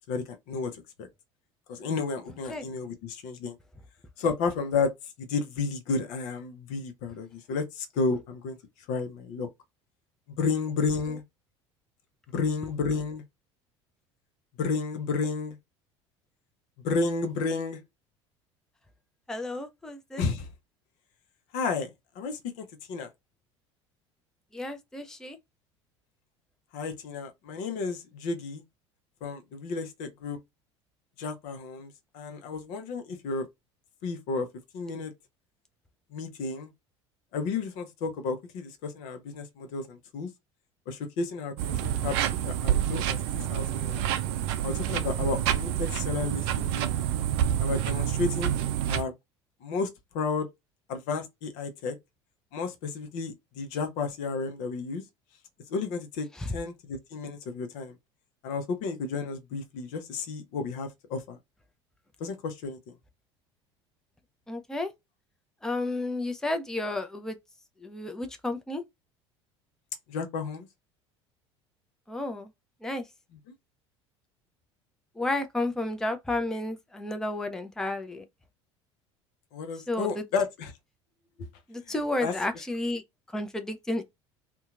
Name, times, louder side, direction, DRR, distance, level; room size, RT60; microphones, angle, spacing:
voice 1, 0.1-1.1 1.7-3.6 4.2-4.9 5.2-8.6 8.9-9.5 10.4-11.2 12.3-13.2 14.6-15.6 16.8-17.8 20.2-20.5 21.5-21.9 22.2-23.1 26.7-28.6 29.2-30.4 31.2-33.5 34.0-34.5 34.7-35.1 36.1-36.7 37.3-40.3 40.9-42.2 42.4-44.1 44.6-46.9 47.6-48.5 48.9-49.1 49.6-49.9 50.1-50.5 50.9-52.0 52.5-55.0 55.7-58.0 58.4-61.4 62.2-62.8 70.1-70.7 79.5-80.7 81.4-81.5 81.9-82.0 82.2-82.3, left 4 dB, 55° left, 0.6 m, -32 dB
voice 2, 19.3-20.2 24.5-25.4 56.4-56.5 64.5-64.9 65.6-67.4 67.8-68.8 72.1-72.5 72.8-73.0 75.2-78.2 79.9-80.2 81.7-83.0 83.3-84.0, left 2 dB, 5° left, 0.5 m, -32 dB
sound 1, 41.6-49.0, right 11 dB, 60° right, 0.4 m, -28 dB
2.7 x 2.2 x 2.3 m
figure-of-eight pair, 65°, 15 cm